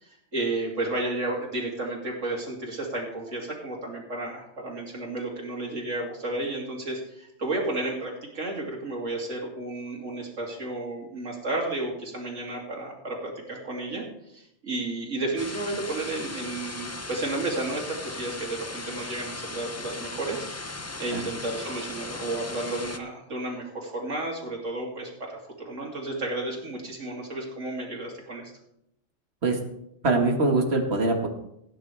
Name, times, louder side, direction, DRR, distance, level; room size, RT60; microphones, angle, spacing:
voice 1, 0.0-20.5 21.0-28.4, right 2 dB, 85° right, -1 dB, 3.1 m, -32 dB
sound 1, 15.4-23.0, left 2 dB, 25° left, 0.4 m, -37 dB
voice 2, 30.0-31.3, right 2 dB, 60° right, 3 dB, 2.0 m, -23 dB
17.0 x 9.6 x 3.5 m, 0.79 s
omnidirectional pair, 1.3 m